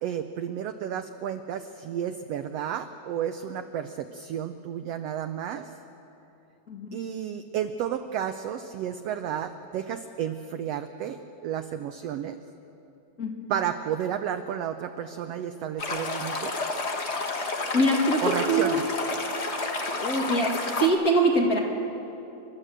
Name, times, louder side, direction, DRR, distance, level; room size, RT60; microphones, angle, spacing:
voice 1, 0.0-5.7 6.9-11.2 11.4-12.4 13.5-16.5 18.2-18.8, right 9 dB, 80° right, 8 dB, 1.5 m, -32 dB
voice 2, 6.7-7.0 13.2-13.3 17.7-18.7 19.9-21.6, right 1 dB, 30° left, -1 dB, 2.1 m, -24 dB
Stream, 15.8-20.9, left 3 dB, 50° left, 0.7 m, -30 dB
29.5 x 13.0 x 7.6 m, 3.0 s
omnidirectional pair, 3.5 m